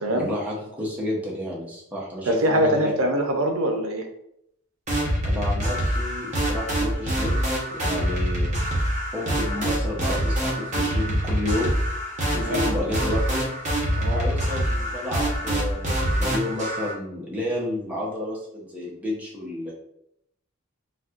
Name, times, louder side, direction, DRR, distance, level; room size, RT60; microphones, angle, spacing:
voice 1, 0.1-2.9 5.2-11.7 12.3-13.4 14.1-19.7, left 1 dB, 5° right, -5 dB, 0.7 m, -31 dB
voice 2, 2.3-4.1 12.3-12.6 14.0-14.2, right 1 dB, 75° right, 4 dB, 0.5 m, -23 dB
sound 1, 4.9-16.9, right 1 dB, 35° right, 0.9 m, -25 dB
4.1 x 2.2 x 2.4 m, 0.75 s
head